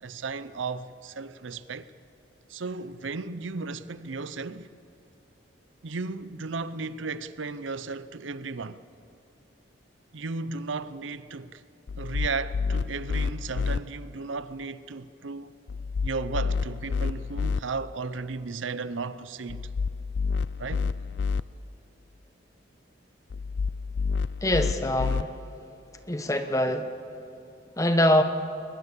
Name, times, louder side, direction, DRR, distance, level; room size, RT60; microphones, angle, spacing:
voice 1, 0.0-1.9 2.5-4.7 5.8-8.8 10.1-11.6 12.0-15.5 16.0-19.7 20.6-20.9, right 4 dB, 80° right, 0.7 m, -35 dB
sound 1, 11.9-13.8 15.7-17.6 19.5-21.4 23.3-25.2, left 5 dB, 65° left, 0.4 m, -29 dB
voice 2, 24.4-25.3 26.0-26.9 27.8-28.2, left 1 dB, 15° left, 1.1 m, -23 dB
22.0 x 21.0 x 6.8 m
head